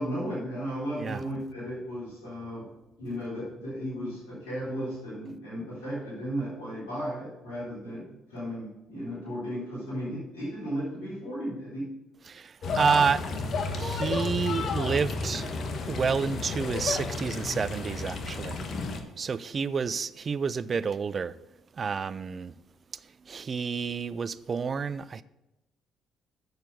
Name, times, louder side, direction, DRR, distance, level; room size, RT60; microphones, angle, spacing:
voice 1, 0.0-2.7 3.0-11.9, equal, 85° left, 4.0 m, -35 dB
voice 2, 12.3-13.2 13.8-15.5 15.9-18.6 19.2-21.4 21.7-22.5 23.0-25.2, right 5 dB, 45° right, 0.4 m, -29 dB
sound 1, 12.6-19.0, left 3 dB, 55° left, 1.2 m, -32 dB
7.9 x 6.7 x 6.9 m
hypercardioid pair, 55°, 0 cm